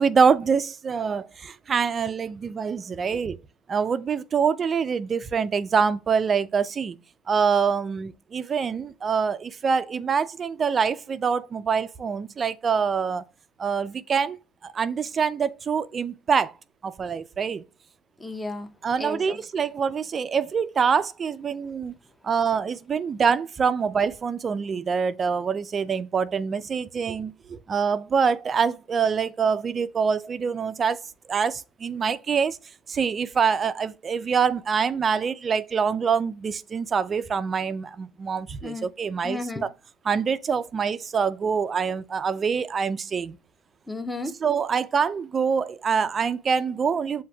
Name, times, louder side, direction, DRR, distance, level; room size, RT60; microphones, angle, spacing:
voice 1, 0.0-3.4 3.7-7.0 7.3-13.2 13.6-14.4 14.6-16.5 16.8-17.6 18.8-21.9 22.2-31.0 31.3-32.6 32.9-39.7 40.0-43.4 44.4-47.2, right 6 dB, 30° right, 0.4 m, -25 dB
voice 2, 18.2-18.7 19.0-19.4 38.6-38.9 39.2-39.7 43.9-44.3, left 2 dB, 10° left, 0.6 m, -33 dB
7.3 x 2.5 x 2.3 m
supercardioid pair, 105°, 0 cm